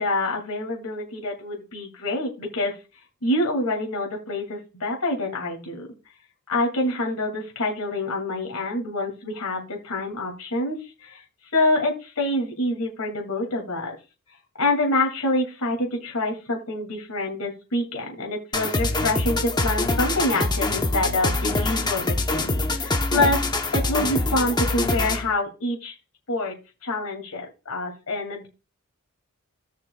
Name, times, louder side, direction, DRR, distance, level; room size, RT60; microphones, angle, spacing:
voice 1, 0.0-2.7 3.2-5.9 6.5-11.2 11.5-14.0 14.6-23.5 23.7-25.9 26.3-28.5, left 2 dB, 85° left, 1 dB, 2.4 m, -26 dB
sound 1, 18.5-25.3, left 2 dB, 20° left, 0.8 m, -24 dB
16.5 x 6.4 x 2.3 m, 0.30 s
head